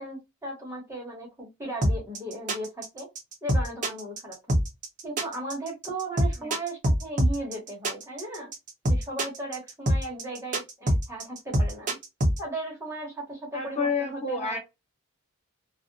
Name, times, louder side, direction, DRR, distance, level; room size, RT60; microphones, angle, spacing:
voice 1, 0.0-3.1 3.4-4.4 5.0-8.5 8.8-12.0 12.4-14.6, right 1 dB, 15° right, 0.8 m, -36 dB
sound 1, 1.8-12.4, right 1 dB, 35° right, 0.6 m, -24 dB
voice 2, 13.5-14.6, left 4 dB, 30° left, 1.0 m, -29 dB
2.7 x 2.1 x 2.6 m
head